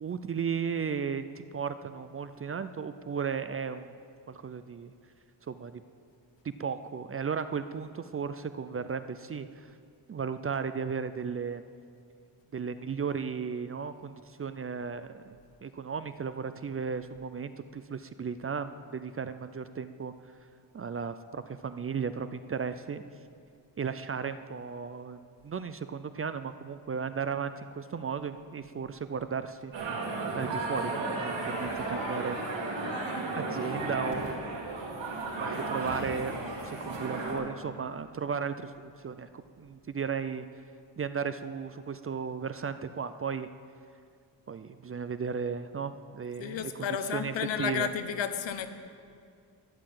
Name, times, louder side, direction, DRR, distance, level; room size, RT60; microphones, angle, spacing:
voice 1, 0.0-1.2 1.5-3.9 4.3-4.9 5.5-5.8 6.4-9.7 10.1-11.6 12.5-20.1 20.7-23.0 23.8-29.7 30.3-32.4 33.3-34.5 35.4-36.4 36.6-39.3 39.6-40.4 41.0-43.5 44.5-47.9, right 6 dB, 30° right, 11 dB, 0.4 m, -35 dB
sound 1, 29.7-37.3, right 2 dB, 80° right, 3.7 m, -34 dB
voice 2, 46.4-48.7, left 8 dB, 75° left, 9 dB, 1.1 m, -32 dB
13.5 x 10.5 x 7.6 m, 2.3 s
wide cardioid pair, 155°, 45 cm